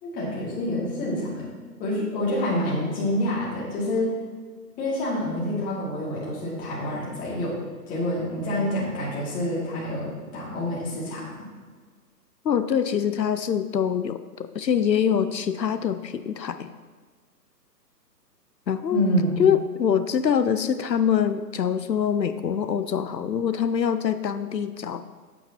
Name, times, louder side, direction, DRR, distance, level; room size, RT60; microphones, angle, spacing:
voice 1, 0.0-1.5 1.8-4.1 4.8-7.6 7.9-11.5 18.9-19.4, left 1 dB, 15° left, -6 dB, 2.5 m, -27 dB
voice 2, 12.4-16.7 18.7-19.0 19.4-25.0, left 8 dB, 85° left, 11 dB, 0.6 m, -24 dB
11.5 x 8.6 x 3.0 m, 1.5 s
figure-of-eight pair, 130°, 49 cm